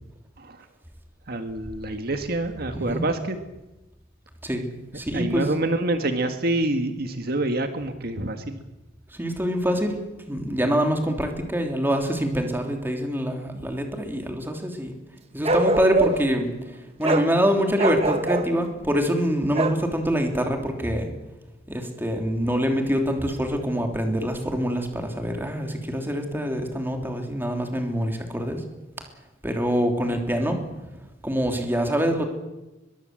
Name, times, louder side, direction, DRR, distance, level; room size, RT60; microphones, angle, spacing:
voice 1, 1.3-3.4 5.1-8.6 13.5-13.7, right 2 dB, 60° right, 7 dB, 1.6 m, -27 dB
voice 2, 4.9-5.4 9.1-10.0 10.3-14.9 15.3-16.5 17.0-21.1 21.7-28.6 29.4-30.6 31.2-32.2, equal, 10° right, 4 dB, 3.3 m, -25 dB
Bark, 15.4-16.3 17.0-17.3 17.8-18.5 19.5-19.8, right 2 dB, 35° right, 1.5 m, -23 dB
22.5 x 22.0 x 7.8 m, 1.0 s
head